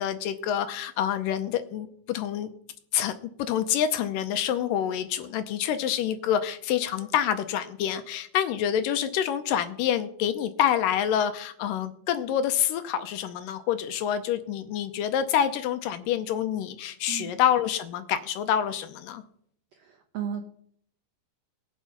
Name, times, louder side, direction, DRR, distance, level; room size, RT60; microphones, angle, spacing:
voice 1, 0.0-2.5 2.9-19.2, left 9 dB, 75° left, 10 dB, 2.2 m, -27 dB
voice 2, 19.8-20.5, right 8 dB, 85° right, 5 dB, 1.4 m, -35 dB
19.5 x 7.2 x 5.8 m, 0.66 s
omnidirectional pair, 4.3 m